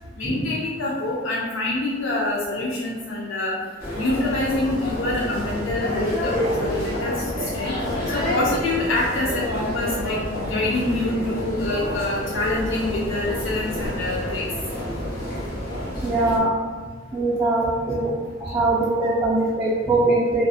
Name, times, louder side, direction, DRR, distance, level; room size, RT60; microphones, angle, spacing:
voice 1, 0.2-3.6 4.0-7.7 8.1-14.5 19.0-19.1, left 2 dB, 70° left, -4 dB, 0.4 m, -26 dB
sound 1, 3.8-16.4, left 1 dB, 55° left, 1.0 m, -28 dB
voice 2, 16.0-16.5 17.1-18.1 18.4-20.4, right 2 dB, 15° right, -8 dB, 0.3 m, -21 dB
2.7 x 2.2 x 2.3 m, 1.5 s
head